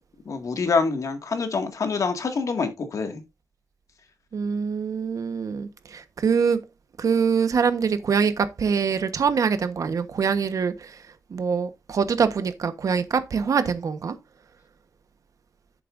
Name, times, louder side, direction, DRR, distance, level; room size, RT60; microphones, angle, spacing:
voice 1, 0.3-3.2, left 4 dB, 60° left, 2.0 m, -26 dB
voice 2, 4.3-6.6 7.0-11.0 11.3-14.2, right 6 dB, 65° right, 1.2 m, -24 dB
11.0 x 8.5 x 2.6 m
wide cardioid pair, 160°, 6 cm